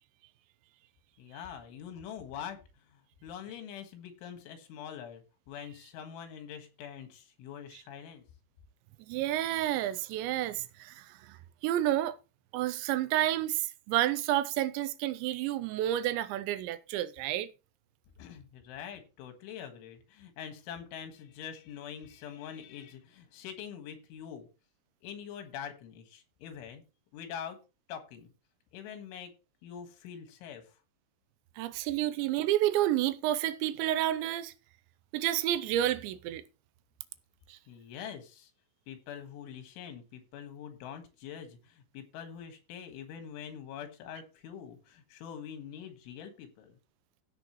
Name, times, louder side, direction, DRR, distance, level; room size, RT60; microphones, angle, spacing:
voice 1, 1.2-2.6 2.9-8.2 18.2-24.5 25.0-26.8 27.1-27.6 27.9-28.3 28.7-29.3 29.6-30.8 37.7-38.5 38.9-46.8, left 8 dB, 90° left, 4.1 m, -44 dB
voice 2, 9.1-11.4 11.6-12.2 12.5-17.5 31.6-34.5 35.1-36.4 37.5-37.6, right 13 dB, 80° right, 2.9 m, -30 dB
16.0 x 6.4 x 3.1 m
omnidirectional pair, 5.4 m